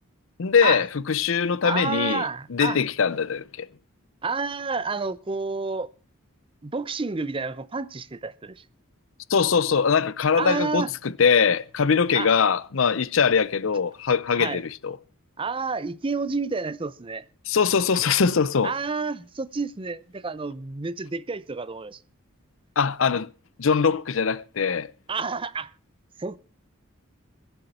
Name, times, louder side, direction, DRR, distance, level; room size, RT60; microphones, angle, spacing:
voice 1, 0.4-2.2 2.5-3.7 9.3-15.0 17.5-18.7 22.8-23.3 23.6-24.9, left 6 dB, 65° left, 0.6 m, -22 dB
voice 2, 1.6-2.8 4.2-5.9 6.6-8.6 10.4-10.9 12.1-12.3 14.3-14.6 15.4-17.3 18.6-22.0 25.1-25.7 26.2-26.4, right 4 dB, 25° right, 0.5 m, -30 dB
22.0 x 8.0 x 4.2 m
head